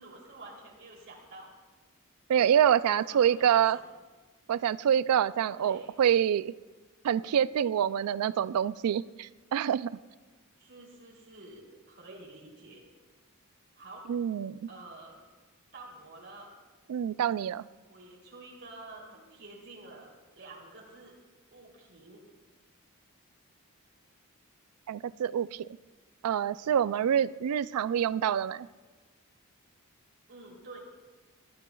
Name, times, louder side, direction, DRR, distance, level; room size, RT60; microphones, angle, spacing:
voice 1, 0.0-1.5 3.1-3.6 5.4-5.9 10.6-12.8 13.7-14.1 14.7-15.2 15.7-16.5 17.9-21.1 21.5-22.2 30.3-30.8, right 2 dB, 55° right, -3 dB, 3.0 m, -49 dB
voice 2, 2.3-3.8 4.5-6.5 7.0-9.9 14.1-14.7 16.9-17.6 24.9-25.7 26.2-28.7, right 9 dB, 85° right, 17 dB, 0.3 m, -26 dB
18.0 x 12.5 x 2.3 m, 1.3 s
head